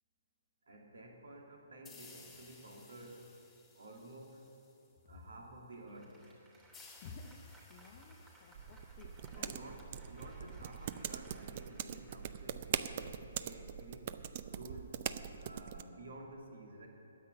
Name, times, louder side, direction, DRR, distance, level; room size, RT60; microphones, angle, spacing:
voice 1, 0.7-3.3 3.7-4.4 5.1-6.3 9.3-9.8 10.1-14.1 14.4-15.0 15.4-16.9, right 2 dB, 70° right, 0 dB, 2.4 m, -52 dB
sound 1, 1.9-5.2 6.7-10.2, left 4 dB, 10° left, 1.8 m, -60 dB
Applause, 5.7-13.3, right 2 dB, 15° right, 3.1 m, -63 dB
voice 2, 7.0-9.5 10.4-10.5, left 4 dB, 40° left, 3 dB, 0.7 m, -53 dB
sound 2, 8.5-15.8, right 9 dB, 45° right, 0.5 m, -42 dB
9.7 x 8.3 x 9.6 m, 2.8 s
figure-of-eight pair, 130°, 0 cm